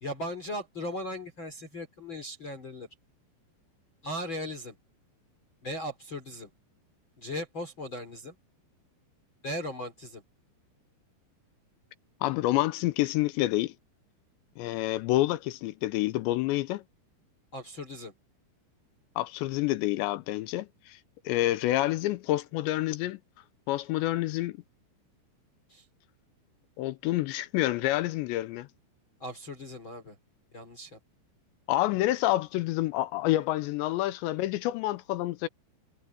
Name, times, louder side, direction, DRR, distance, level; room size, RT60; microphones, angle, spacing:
voice 1, 0.0-2.9 4.0-4.8 5.6-6.5 7.2-8.3 9.4-10.2 17.5-18.1 25.7-25.8 29.2-30.2 30.5-31.0, left 1 dB, 25° left, 3.9 m, -37 dB
voice 2, 12.2-13.7 14.6-16.8 19.2-21.0 21.3-23.2 23.7-24.6 26.8-28.7 31.7-35.5, left 16 dB, 80° left, 2.8 m, -28 dB
omnidirectional pair, 5.5 m